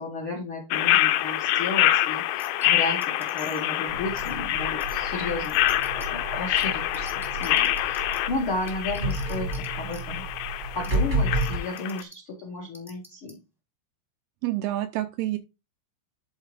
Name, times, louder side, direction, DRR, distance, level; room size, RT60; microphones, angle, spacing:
voice 1, 0.0-10.3 10.7-13.4, left 2 dB, 70° left, 1 dB, 1.2 m, -34 dB
sound 1, 0.7-12.0, left 14 dB, 85° left, 2.9 m, -26 dB
sound 2, 2.4-2.7 3.0-3.7 4.2-4.3 4.8-5.0 5.4-6.1 6.6-6.7 6.9-8.2 8.7-9.6 9.9-10.0 10.8-10.9 11.4-11.5 11.8-12.1 12.7-13.3, equal, ahead, 0.5 m, -46 dB
sound 3, 3.9-11.6, right 2 dB, 40° right, 0.9 m, -32 dB
voice 2, 14.4-15.4, right 15 dB, 85° right, 9 dB, 2.2 m, -28 dB
10.0 x 4.1 x 4.9 m, 0.26 s
omnidirectional pair, 4.9 m